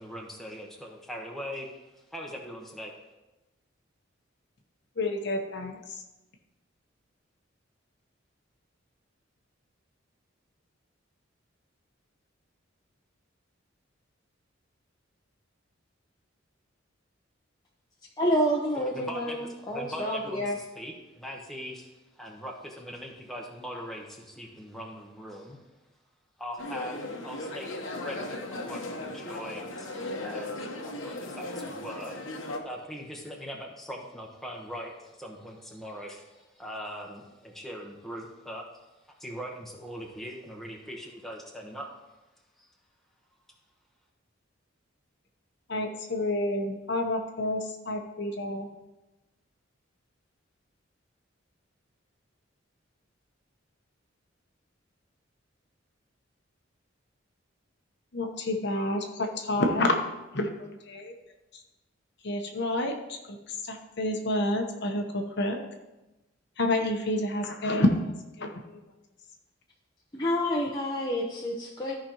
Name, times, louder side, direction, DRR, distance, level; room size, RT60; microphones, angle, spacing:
voice 1, 0.0-2.9 18.8-25.6 26.4-29.9 30.2-30.6 30.8-32.2 32.6-38.7 39.2-41.9 42.6-42.7, equal, ahead, -1 dB, 1.1 m, -41 dB
voice 2, 5.0-6.0 45.7-48.7 58.1-60.0 60.3-60.5 60.9-61.1 62.2-63.2 63.5-65.6 66.6-68.0 68.4-68.8, left 1 dB, 55° left, 3 dB, 0.9 m, -29 dB
voice 3, 18.2-20.6 70.1-71.9, equal, 20° left, -4 dB, 0.8 m, -28 dB
sound 1, 26.6-32.6, left 2 dB, 75° left, 1.1 m, -37 dB
14.0 x 5.1 x 3.0 m, 1.0 s
head